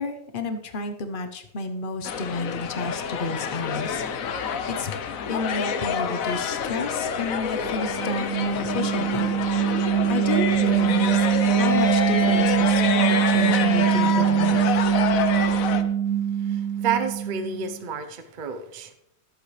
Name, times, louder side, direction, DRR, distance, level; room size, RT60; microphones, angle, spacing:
voice 1, 0.0-4.9 5.3-14.6, left 3 dB, 85° left, 6 dB, 0.4 m, -31 dB
sound 1, 2.0-15.8, left 6 dB, 60° left, 0.9 m, -27 dB
sound 2, 7.6-17.7, right 9 dB, 35° right, 2.3 m, -23 dB
voice 2, 16.4-18.9, right 6 dB, 70° right, 7 dB, 0.4 m, -30 dB
21.5 x 8.3 x 3.3 m, 0.82 s
omnidirectional pair, 2.3 m